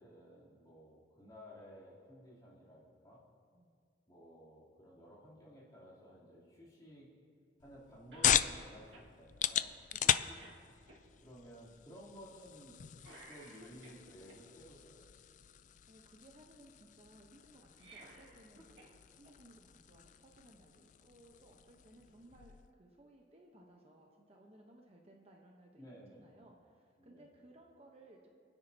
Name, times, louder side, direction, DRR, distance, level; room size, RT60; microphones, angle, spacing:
voice 1, 0.0-3.2 4.1-7.1 7.6-9.8 11.2-12.8 13.3-15.0 25.8-26.3 27.0-27.3, equal, 20° left, -8 dB, 3.2 m, -55 dB
sound 1, 7.6-22.7, left 10 dB, 45° left, 0.3 m, -39 dB
Cough, 8.1-8.6 8.9-9.1 9.6-9.7 10.0-11.0 13.0-14.4 17.6-18.9 19.2-19.3 20.5-20.6, right 2 dB, 80° right, 2.0 m, -56 dB
voice 2, 9.9-10.5 15.5-25.9 26.2-28.3, right 1 dB, 35° right, 0 dB, 0.9 m, -61 dB
27.5 x 9.8 x 2.8 m, 2.2 s
head